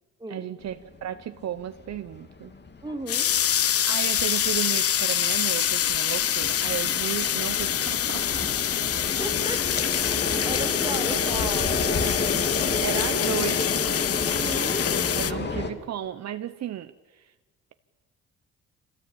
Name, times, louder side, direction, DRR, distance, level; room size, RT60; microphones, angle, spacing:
voice 1, 0.3-0.8 1.0-2.5 3.9-8.5 12.8-13.8 15.1-17.3, right 10 dB, 60° right, 10 dB, 1.0 m, -34 dB
sound 1, 0.6-15.7, left 3 dB, 35° left, 2.7 m, -31 dB
voice 2, 2.8-3.3 9.2-11.9 14.3-14.9, right 2 dB, 15° right, 5 dB, 3.0 m, -36 dB
sound 2, 3.1-15.3, left 10 dB, 50° left, 0.8 m, -25 dB
25.5 x 17.5 x 8.9 m, 1.2 s
cardioid pair, 90°, 30 cm